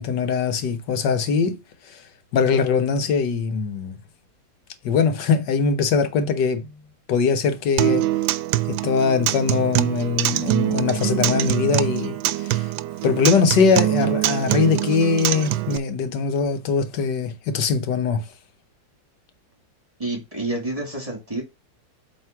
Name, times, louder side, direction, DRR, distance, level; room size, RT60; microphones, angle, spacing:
voice 1, 0.0-1.6 1.9-2.0 2.3-4.0 4.8-6.8 7.1-8.1 8.7-12.7 13.0-18.3, left 5 dB, 70° left, 1.6 m, -22 dB
Acoustic guitar, 7.8-15.8, right 15 dB, 80° right, 1.2 m, -24 dB
voice 2, 20.0-21.4, right 2 dB, 20° right, 2.3 m, -28 dB
7.9 x 3.6 x 5.8 m
omnidirectional pair, 2.0 m